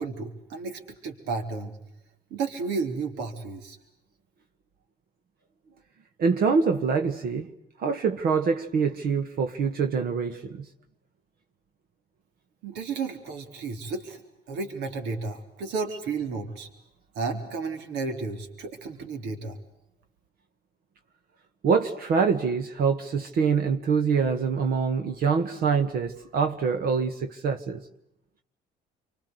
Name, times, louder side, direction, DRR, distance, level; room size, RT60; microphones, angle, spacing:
voice 1, 0.0-1.8 2.3-3.8 12.6-14.2 14.5-16.7 17.1-19.6, right 4 dB, 85° right, 4.0 m, -32 dB
voice 2, 6.2-7.5 7.8-10.7 21.6-27.8, right 5 dB, 65° right, 1.8 m, -25 dB
29.0 x 25.0 x 8.2 m
cardioid pair, 110°, 17 cm